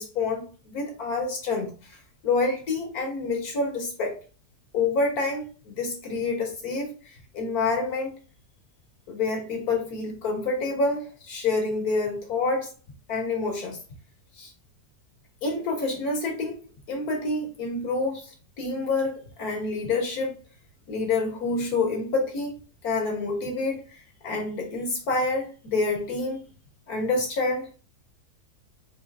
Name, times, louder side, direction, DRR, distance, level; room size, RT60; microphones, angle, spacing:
voice 1, 0.0-1.7 2.2-4.2 4.7-8.1 9.1-12.7 13.1-13.8 14.4-14.5 15.4-16.6 16.9-20.3 20.9-22.5 22.8-26.4 26.9-27.7, left 3 dB, 65° left, 1.7 m, -27 dB
4.5 x 2.8 x 3.4 m
omnidirectional pair, 1.8 m